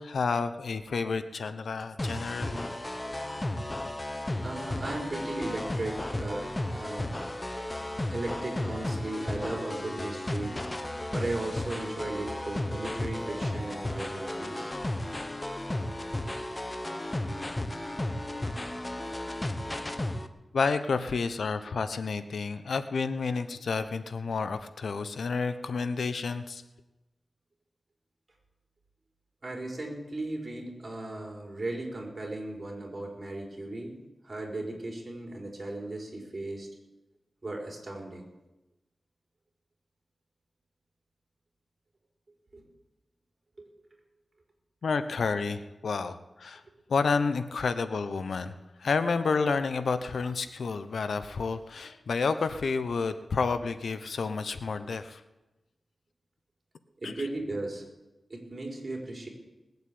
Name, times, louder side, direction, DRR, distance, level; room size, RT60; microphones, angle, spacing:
voice 1, 0.0-2.7 20.5-26.6 44.8-46.6 46.9-55.2 57.0-57.3, left 4 dB, 85° left, 11 dB, 0.9 m, -30 dB
sound 1, 2.0-20.3, left 1 dB, 20° left, 1.0 m, -34 dB
voice 2, 4.4-7.1 8.0-10.6 11.1-14.7 29.4-33.9 34.2-36.7 37.4-38.3 42.5-42.6 43.6-43.7 57.0-57.8 58.3-59.3, right 2 dB, 35° right, 0 dB, 4.6 m, -36 dB
20.0 x 8.0 x 8.7 m, 1.0 s
wide cardioid pair, 115°, 0 cm